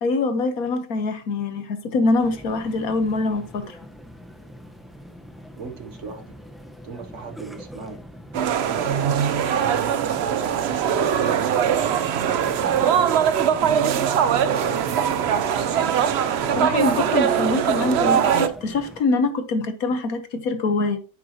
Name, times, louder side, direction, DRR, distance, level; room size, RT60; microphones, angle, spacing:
voice 1, 0.0-3.8 16.6-21.0, left 3 dB, 60° left, 1.3 m, -24 dB
sound 1, 2.2-19.0, equal, ahead, 0.3 m, -41 dB
voice 2, 5.6-6.3 6.8-8.0 8.4-9.5 10.3-11.6 12.2-13.2 13.8-15.7, right 4 dB, 50° right, 1.0 m, -38 dB
sound 2, 8.3-18.5, right 8 dB, 80° right, 0.5 m, -21 dB
9.5 x 7.5 x 2.8 m
omnidirectional pair, 1.9 m